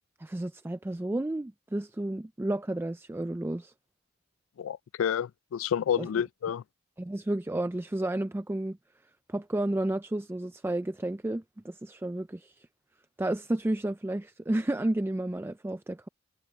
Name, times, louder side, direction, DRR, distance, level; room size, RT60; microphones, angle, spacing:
voice 1, 0.2-3.7 6.0-6.1 7.0-8.8 9.3-12.7 13.2-16.1, right 1 dB, 10° right, 0.4 m, -31 dB
voice 2, 4.6-6.6, left 8 dB, 70° left, 0.3 m, -29 dB
head